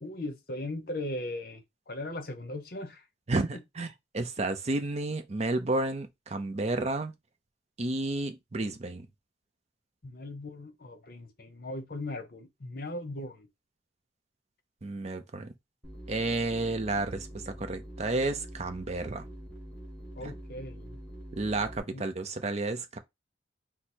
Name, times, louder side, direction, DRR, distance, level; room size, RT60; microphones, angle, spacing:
voice 1, 0.0-3.0 10.0-13.5 20.2-21.0 21.9-22.1, left 1 dB, 50° left, 0.8 m, -38 dB
voice 2, 3.3-7.1 7.8-9.1 14.8-15.5 16.1-19.2 20.2-20.3 21.3-23.0, right 2 dB, 35° right, 0.5 m, -31 dB
sound 1, 15.8-21.8, equal, 5° left, 1.8 m, -44 dB
4.6 x 2.0 x 4.2 m
head